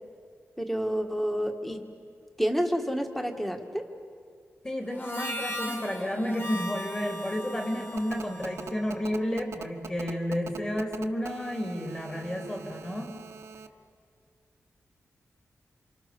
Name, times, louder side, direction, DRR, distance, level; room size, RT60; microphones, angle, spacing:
voice 1, 0.6-1.8 2.4-3.9, equal, 5° left, 5 dB, 1.9 m, -29 dB
voice 2, 4.6-13.2, equal, 20° left, 3 dB, 3.3 m, -31 dB
Harmonica, 4.9-9.5, left 1 dB, 45° left, 2.3 m, -39 dB
Telephone, 8.0-13.7, right 6 dB, 65° right, 1.2 m, -42 dB
29.5 x 27.0 x 6.9 m, 2.3 s
wide cardioid pair, 165°, 5 cm